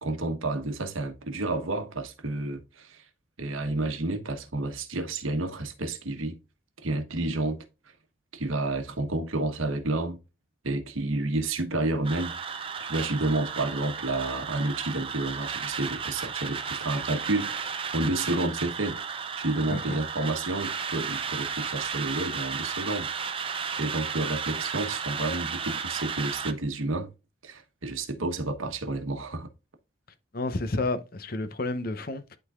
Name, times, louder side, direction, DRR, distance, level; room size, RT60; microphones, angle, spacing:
voice 1, 0.0-3.0 3.4-6.4 6.8-7.6 8.3-10.2 10.6-12.4 12.8-19.0 19.3-23.5 23.8-27.1 27.4-29.5, right 2 dB, 85° right, 1.2 m, -30 dB
sound 1, 12.0-26.5, right 6 dB, 25° right, 0.6 m, -34 dB
voice 2, 30.3-32.4, left 2 dB, 45° left, 0.7 m, -31 dB
11.5 x 3.8 x 2.4 m
head